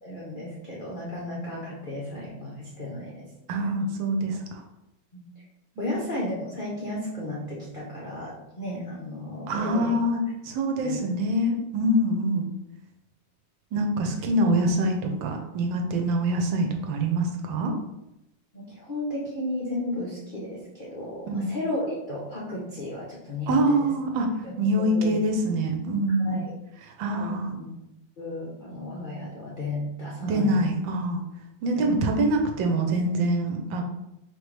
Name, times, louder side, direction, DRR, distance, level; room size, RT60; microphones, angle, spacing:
voice 1, 0.0-3.3 5.1-5.3 5.8-10.0 10.8-11.0 18.5-23.9 24.4-25.1 26.2-26.5 27.1-27.7 28.2-30.6 31.7-31.9, left 1 dB, 60° left, -5 dB, 0.5 m, -34 dB
voice 2, 3.5-4.6 5.8-5.9 9.5-12.5 13.7-17.7 21.3-21.5 23.5-24.3 24.6-26.5 27.0-27.5 30.2-31.2 31.6-33.8, right 1 dB, 80° right, 3 dB, 1.4 m, -25 dB
4.5 x 3.3 x 3.2 m, 0.88 s
omnidirectional pair, 2.1 m